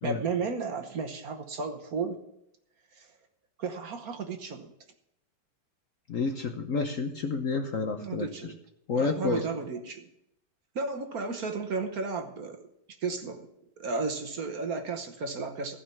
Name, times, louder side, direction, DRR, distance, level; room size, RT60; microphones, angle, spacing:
voice 1, 0.0-2.2 2.9-3.1 3.6-4.7 8.0-8.6 9.0-10.1 10.7-12.7 13.0-13.5 13.8-15.8, right 4 dB, 55° right, 6 dB, 1.4 m, -33 dB
voice 2, 6.1-8.5 8.9-9.5, left 4 dB, 55° left, 6 dB, 1.1 m, -30 dB
15.5 x 5.6 x 8.3 m, 0.79 s
omnidirectional pair, 2.1 m